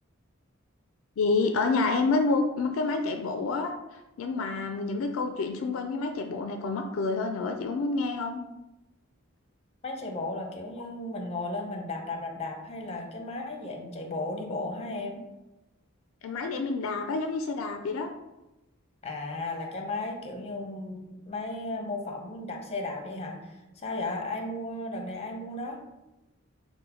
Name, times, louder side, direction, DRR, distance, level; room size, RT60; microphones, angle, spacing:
voice 1, 1.2-3.7 4.2-8.4 16.2-18.1, left 3 dB, 75° left, 6 dB, 0.3 m, -28 dB
voice 2, 9.8-15.2 19.0-25.8, left 2 dB, 30° left, 2 dB, 0.6 m, -35 dB
3.9 x 2.1 x 4.2 m, 0.98 s
head